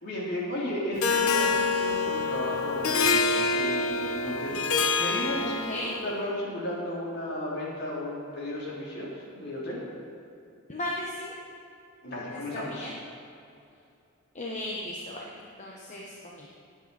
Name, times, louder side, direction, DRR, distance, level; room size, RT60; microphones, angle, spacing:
voice 1, 0.0-5.7 6.0-9.8 12.0-12.9, left 1 dB, 50° left, -5 dB, 3.1 m, -34 dB
Harp, 1.0-6.0, left 4 dB, 90° left, 0.9 m, -26 dB
voice 2, 5.6-5.9 10.7-11.3 12.3-12.9 14.3-16.5, left 1 dB, 35° left, -3 dB, 1.1 m, -36 dB
18.5 x 8.4 x 4.2 m, 2.6 s
head